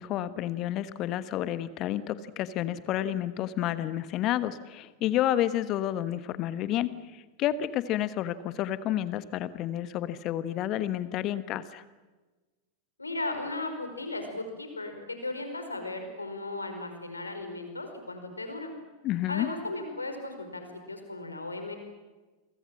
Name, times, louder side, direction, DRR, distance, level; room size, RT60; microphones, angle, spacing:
voice 1, 0.0-11.8 19.0-19.5, left 12 dB, 35° left, 14 dB, 1.3 m, -30 dB
voice 2, 13.0-18.7 19.3-21.8, left 2 dB, 80° left, 7 dB, 4.9 m, -36 dB
29.5 x 23.5 x 7.6 m, 1.2 s
figure-of-eight pair, 90°, 0 cm